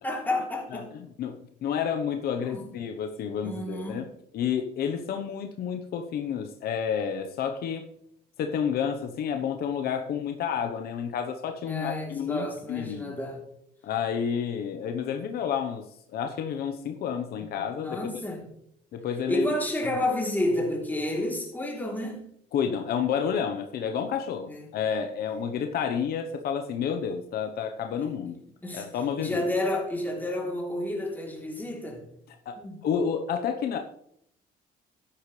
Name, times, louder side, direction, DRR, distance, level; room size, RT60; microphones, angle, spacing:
voice 1, 0.0-0.9 2.4-2.7 3.4-4.0 11.6-13.4 17.4-17.5 17.8-18.4 19.3-22.3 24.5-24.7 28.0-28.1 28.6-28.9 29.2-32.0 32.6-32.8, left 1 dB, 10° left, -1 dB, 3.3 m, -30 dB
voice 2, 0.7-4.1 4.3-7.9 8.4-13.2 13.8-18.0 18.9-19.5 22.5-28.4 28.7-29.4 32.5-33.8, left 7 dB, 65° left, 6 dB, 1.0 m, -30 dB
13.0 x 10.0 x 3.3 m, 0.72 s
cardioid pair, 110°, 17 cm